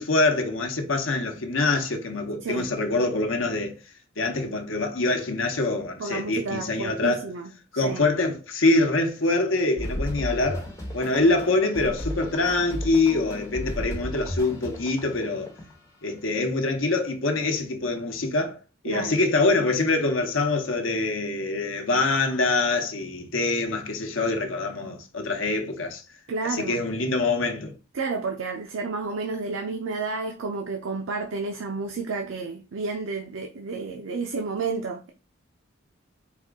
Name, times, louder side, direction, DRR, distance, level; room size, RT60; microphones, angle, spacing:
voice 1, 0.0-3.8 4.2-7.2 7.7-10.7 10.9-15.5 16.0-18.6 18.8-26.0 26.5-27.7, left 2 dB, 75° left, 0.9 m, -25 dB
voice 2, 6.0-8.1 18.9-19.2 26.3-26.8 27.9-35.1, right 4 dB, 75° right, 0.5 m, -31 dB
sound 1, 9.8-15.8, equal, 15° left, 1.3 m, -34 dB
4.2 x 2.4 x 3.5 m
head